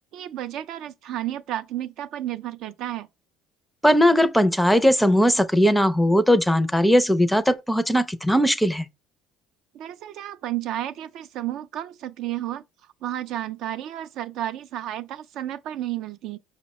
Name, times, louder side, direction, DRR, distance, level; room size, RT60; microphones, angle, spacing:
voice 1, 0.1-3.1 9.7-12.6 13.0-16.4, right 12 dB, 65° right, 0.3 m, -32 dB
voice 2, 3.8-8.9, equal, 5° left, 0.4 m, -19 dB
5.4 x 2.1 x 4.1 m
supercardioid pair, 90°, 0 cm